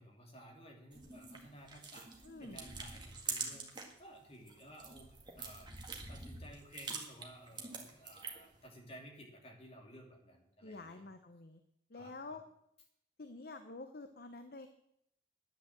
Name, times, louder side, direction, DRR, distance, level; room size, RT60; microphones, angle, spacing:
voice 1, 0.0-11.0 11.9-12.4, equal, 35° left, 0 dB, 2.9 m, -56 dB
sound 1, 0.9-4.0 4.3-8.6, right 4 dB, 25° right, 2.0 m, -45 dB
voice 2, 2.2-2.6 10.6-11.6 11.9-12.4 13.2-14.7, left 3 dB, 55° left, 8 dB, 0.8 m, -48 dB
10.5 x 10.0 x 7.4 m, 0.77 s
head